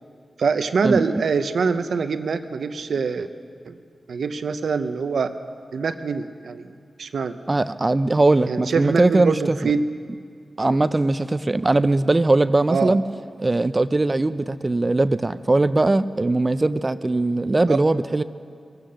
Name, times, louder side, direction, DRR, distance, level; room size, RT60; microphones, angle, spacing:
voice 1, 0.4-3.3 3.6-3.8 4.1-5.3 5.7-6.7 7.0-7.4 8.5-9.8 10.6-10.8 12.7-13.0 17.7-17.8, right 5 dB, 80° right, 10 dB, 0.6 m, -24 dB
voice 2, 7.5-9.7 10.6-13.0 13.4-18.2, right 2 dB, 30° right, 14 dB, 0.4 m, -20 dB
21.5 x 8.7 x 6.3 m, 2.2 s
cardioid pair, 55°, 0 cm